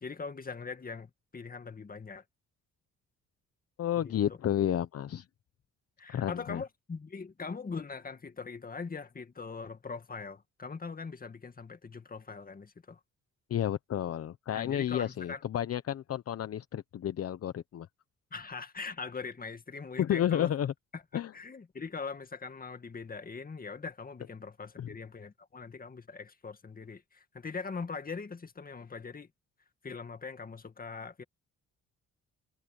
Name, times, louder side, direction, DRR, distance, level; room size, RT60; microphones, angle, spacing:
voice 1, 0.0-2.2 4.0-4.4 6.0-13.0 14.5-15.4 18.3-20.5 20.9-21.0 21.3-29.3 29.8-31.2, left 4 dB, 30° left, 2.1 m, -41 dB
voice 2, 3.8-5.2 6.1-6.6 13.5-17.9 20.0-20.7 21.1-21.3 24.8-24.9, left 10 dB, 55° left, 0.9 m, -31 dB
cardioid pair, 90°, 30 cm